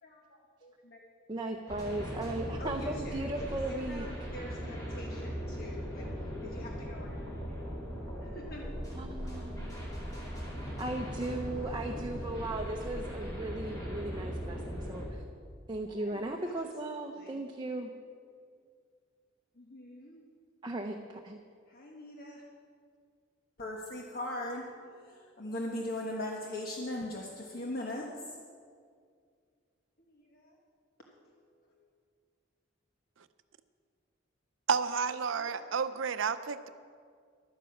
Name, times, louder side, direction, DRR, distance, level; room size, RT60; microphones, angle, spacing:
voice 1, 0.0-1.0 2.6-7.3 8.2-8.7 15.8-17.4 19.5-20.2 21.7-22.4 23.6-28.4 30.0-30.6 31.1-31.3 31.8-31.9 35.2-35.7, left 1 dB, 50° left, -1 dB, 1.2 m, -42 dB
voice 2, 1.3-4.1 8.9-9.7 10.8-15.2 15.7-17.9 20.6-21.4, right 2 dB, 25° right, 2 dB, 0.7 m, -37 dB
sound 1, 1.7-15.1, equal, 20° left, 3.2 m, -39 dB
voice 3, 34.7-36.7, right 6 dB, 75° right, 12 dB, 0.6 m, -31 dB
11.5 x 9.8 x 7.1 m, 2.1 s
head